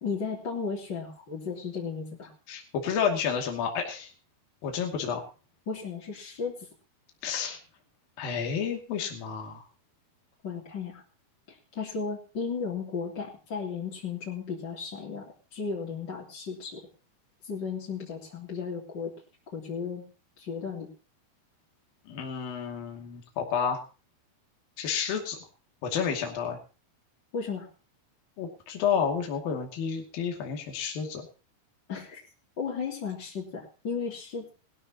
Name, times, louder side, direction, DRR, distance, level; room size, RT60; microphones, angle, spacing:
voice 1, 0.0-2.3 5.7-6.6 10.4-11.0 11.5-16.8 17.4-19.1 19.5-20.0 20.4-20.9 27.3-27.7 31.9-32.2 32.6-34.5, left 5 dB, 30° left, -3 dB, 3.3 m, -35 dB
voice 2, 2.5-4.1 4.6-5.2 7.2-7.6 8.2-9.6 22.1-23.8 24.8-25.4 25.8-26.6 28.4-31.3, left 7 dB, 65° left, 2 dB, 4.2 m, -30 dB
20.5 x 13.5 x 2.9 m, 0.35 s
omnidirectional pair, 4.6 m